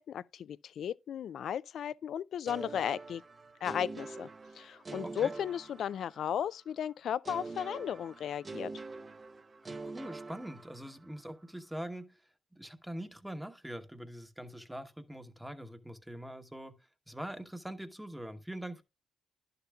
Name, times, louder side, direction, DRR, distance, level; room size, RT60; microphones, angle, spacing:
voice 1, 0.0-3.2 3.6-4.3 4.5-8.7, left 9 dB, 65° left, 0.4 m, -35 dB
sound 1, 2.5-6.4 7.2-11.1, right 3 dB, 30° right, 0.7 m, -45 dB
voice 2, 9.6-12.2 12.5-16.7 17.1-18.8, right 1 dB, 5° right, 1.0 m, -43 dB
11.0 x 6.8 x 2.4 m
cardioid pair, 90°, 0 cm